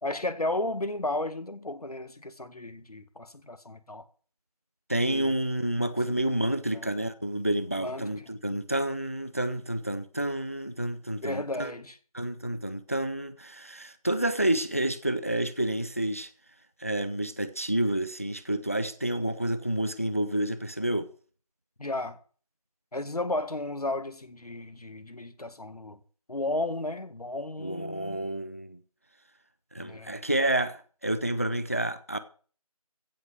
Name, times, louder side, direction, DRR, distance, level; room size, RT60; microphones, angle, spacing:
voice 1, 0.0-4.0 5.1-5.3 6.7-7.0 7.8-8.3 11.2-12.0 21.8-22.2 22.9-26.0 26.3-28.3 29.8-30.1, left 2 dB, 80° left, 2.0 m, -34 dB
voice 2, 4.9-11.7 12.1-16.3 16.8-21.1 27.6-28.8 29.7-32.2, right 1 dB, 25° left, 0.5 m, -29 dB
15.5 x 8.0 x 6.1 m
figure-of-eight pair, 170°, 19 cm